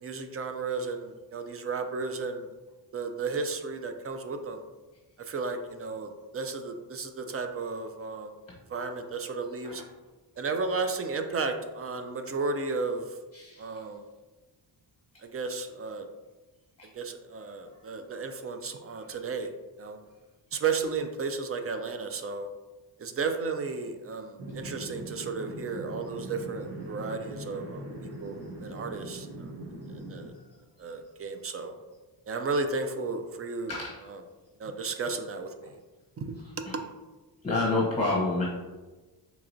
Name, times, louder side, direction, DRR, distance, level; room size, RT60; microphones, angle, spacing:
voice 1, 0.0-2.5 2.9-4.6 5.2-8.3 8.7-9.8 10.4-13.2 13.6-14.0 15.2-16.1 16.9-19.5 19.8-20.0 20.5-22.5 23.0-29.5 30.1-30.3 30.8-31.7 32.3-33.7 34.1-34.2 34.6-35.8 36.2-36.7, right 4 dB, 35° right, 7 dB, 0.4 m, -33 dB
voice 2, 13.3-13.8 16.8-16.9 33.7-34.0 36.7-36.8 37.4-38.4, left 2 dB, 15° left, -3 dB, 0.7 m, -29 dB
sound 1, 24.4-30.3, right 1 dB, 60° right, 0.9 m, -41 dB
4.6 x 2.9 x 2.6 m, 1.2 s
cardioid pair, 80°, 44 cm